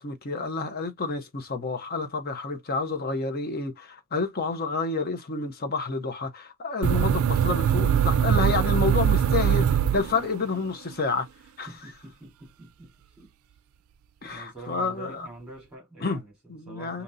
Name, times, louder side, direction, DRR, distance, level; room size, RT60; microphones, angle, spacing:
voice 1, 0.0-11.3 11.6-11.9 14.2-15.3 16.0-16.2 16.5-17.0, left 4 dB, 45° left, 0.8 m, -29 dB
sound 1, 6.8-10.6, right 9 dB, 75° right, 0.3 m, -22 dB
voice 2, 11.7-13.3 14.2-17.0, right 2 dB, 5° right, 3.2 m, -44 dB
5.3 x 2.9 x 2.6 m
head